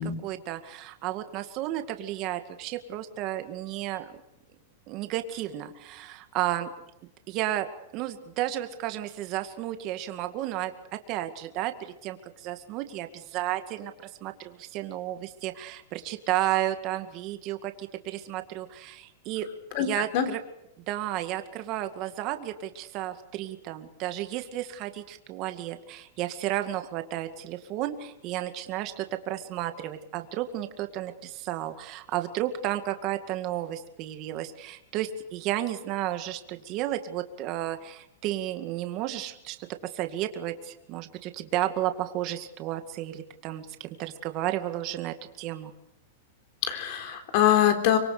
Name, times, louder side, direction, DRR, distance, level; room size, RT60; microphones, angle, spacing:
voice 1, 0.2-4.2 4.9-6.7 7.3-13.9 14.2-19.5 19.8-20.4 20.9-45.7, right 13 dB, 35° right, 8 dB, 2.1 m, -32 dB
voice 2, 19.7-20.3 46.6-48.0, left 10 dB, 50° left, 8 dB, 4.1 m, -23 dB
25.0 x 23.5 x 6.8 m, 0.81 s
supercardioid pair, 150°, 0 cm